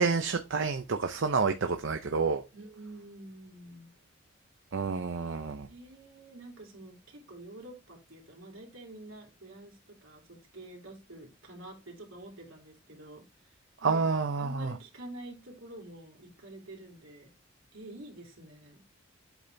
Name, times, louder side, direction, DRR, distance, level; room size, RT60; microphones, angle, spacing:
voice 1, 0.0-2.4 4.7-5.7 13.8-14.7, right 4 dB, 65° right, 7 dB, 0.6 m, -29 dB
voice 2, 2.5-3.9 5.7-13.5 13.8-14.0 14.4-17.3 17.7-18.8, right 1 dB, 85° right, 0 dB, 2.9 m, -48 dB
8.1 x 4.3 x 3.4 m, 0.26 s
head